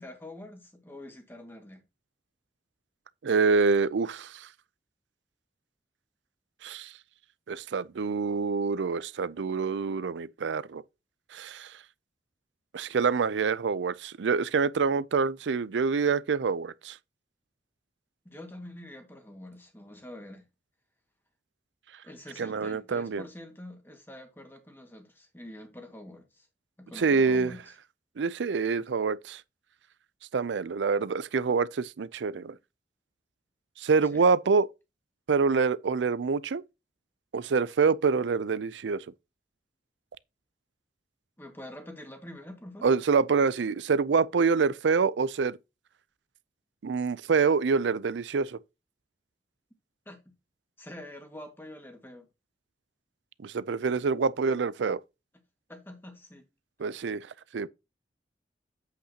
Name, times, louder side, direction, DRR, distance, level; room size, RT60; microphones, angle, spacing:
voice 1, 0.0-1.8 18.2-20.5 22.0-26.5 26.8-27.7 34.1-34.3 41.4-42.9 50.0-50.3 50.8-52.3 55.7-56.5, left 1 dB, 10° left, 1.8 m, -46 dB
voice 2, 3.2-4.5 6.6-6.9 7.5-10.8 11.3-11.7 12.7-17.0 22.4-23.2 27.0-27.5 28.2-29.4 30.3-32.5 33.8-34.7 35.3-36.6 37.3-39.0 42.8-45.6 46.8-48.6 53.4-55.0 56.8-57.3 57.5-57.7, right 5 dB, 90° right, 0.5 m, -26 dB
8.4 x 8.0 x 2.9 m
head